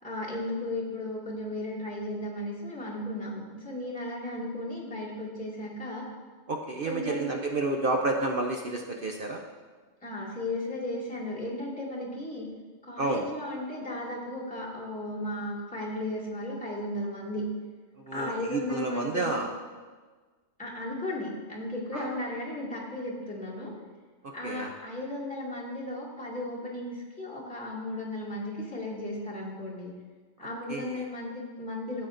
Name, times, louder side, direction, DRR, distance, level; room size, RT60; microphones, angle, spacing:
voice 1, 0.0-6.1 6.8-7.3 10.0-12.5 12.8-17.4 18.1-19.5 20.6-23.7 24.3-29.9 30.4-32.1, left 1 dB, 5° left, -7 dB, 2.1 m, -35 dB
voice 2, 6.5-9.4 13.0-13.2 18.1-19.5 21.9-22.1 24.4-24.7 30.7-30.9, right 2 dB, 50° right, 1 dB, 0.8 m, -30 dB
13.0 x 7.6 x 2.5 m, 1.4 s
omnidirectional pair, 1.4 m